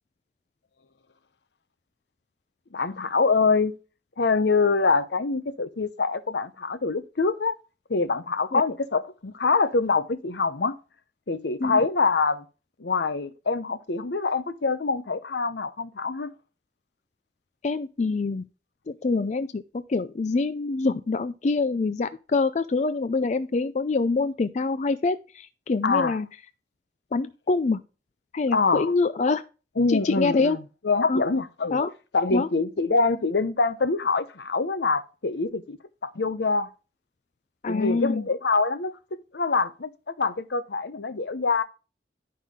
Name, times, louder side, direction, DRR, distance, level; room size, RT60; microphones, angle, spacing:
voice 1, 2.7-3.7 4.2-7.5 7.9-10.7 11.3-12.4 12.8-16.3 25.8-26.2 28.5-28.9 29.8-30.6 30.8-31.8 32.1-35.8 36.0-36.7 37.7-38.9 39.3-39.9 40.2-41.6, left 4 dB, 70° left, 0.8 m, -25 dB
voice 2, 17.6-18.4 18.9-26.3 27.1-27.8 28.3-29.4 29.9-30.6 31.1-31.2 31.7-31.9 32.3-32.5 37.6-38.2, left 3 dB, 40° left, 0.4 m, -25 dB
11.0 x 5.6 x 3.6 m
head